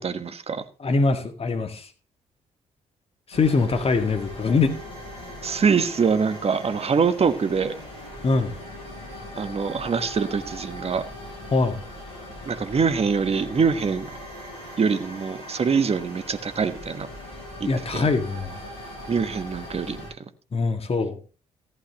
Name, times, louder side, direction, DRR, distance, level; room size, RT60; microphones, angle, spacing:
voice 1, 0.0-0.6 5.4-7.8 9.3-11.0 12.4-14.1 14.8-17.1 17.6-18.0 19.1-20.1, right 5 dB, 40° right, 10 dB, 1.3 m, -24 dB
voice 2, 0.8-1.9 3.3-4.7 8.2-8.6 11.5-11.8 17.6-18.6 20.5-21.2, left 3 dB, 35° left, 6 dB, 1.9 m, -23 dB
sound 1, 3.3-20.1, left 1 dB, 80° left, 8.0 m, -40 dB
14.5 x 11.5 x 3.0 m, 0.36 s
figure-of-eight pair, 45°, 16 cm